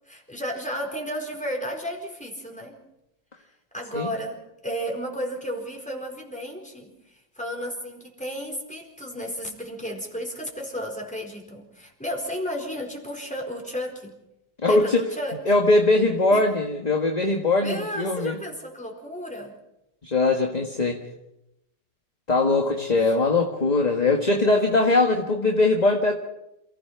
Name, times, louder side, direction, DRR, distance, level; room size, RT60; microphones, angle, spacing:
voice 1, 0.1-2.8 3.7-6.9 7.4-14.1 14.6-15.4 16.3-16.4 17.6-19.5 23.0-23.3, equal, 5° left, 1 dB, 4.3 m, -33 dB
voice 2, 14.6-15.0 15.4-18.4 20.0-21.0 22.3-26.1, left 2 dB, 25° left, 3 dB, 1.6 m, -21 dB
28.5 x 16.5 x 5.8 m, 0.86 s
omnidirectional pair, 1.9 m